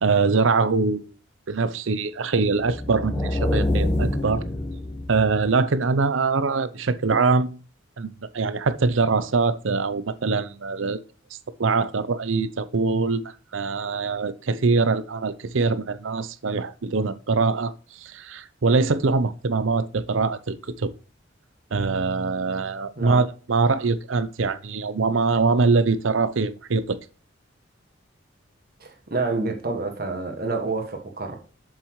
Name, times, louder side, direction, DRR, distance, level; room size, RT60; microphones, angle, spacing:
voice 1, 0.0-1.1 1.5-4.4 5.1-7.6 8.0-11.0 11.6-17.7 18.0-20.9 21.7-27.0, right 4 dB, 80° right, 0.7 m, -23 dB
sound 1, 2.6-5.5, left 1 dB, 15° left, 1.3 m, -26 dB
voice 2, 28.8-31.4, right 3 dB, 50° right, 1.7 m, -28 dB
7.5 x 7.2 x 3.1 m
head